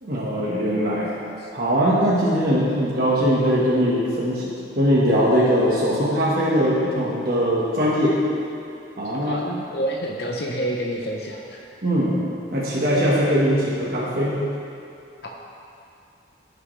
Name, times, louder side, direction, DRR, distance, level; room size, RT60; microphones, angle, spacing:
voice 1, 0.0-1.1 1.5-8.2 9.0-9.3 11.8-14.4, equal, 55° right, -7 dB, 1.4 m, -21 dB
voice 2, 9.1-11.7 15.2-15.3, right 1 dB, 60° left, -1 dB, 0.8 m, -29 dB
16.0 x 6.7 x 3.2 m, 2.6 s
head